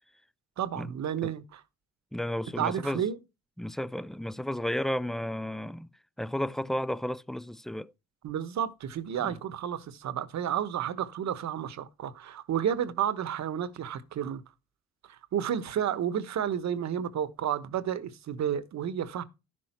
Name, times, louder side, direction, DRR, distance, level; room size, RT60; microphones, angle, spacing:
voice 1, 0.6-1.6 2.6-3.2 8.2-14.4 15.1-19.2, right 9 dB, 65° right, 1.2 m, -31 dB
voice 2, 2.1-3.0 3.6-5.9 6.2-7.9 9.2-9.4, left 1 dB, ahead, 0.4 m, -33 dB
12.0 x 6.3 x 4.4 m
cardioid pair, 90°, 30 cm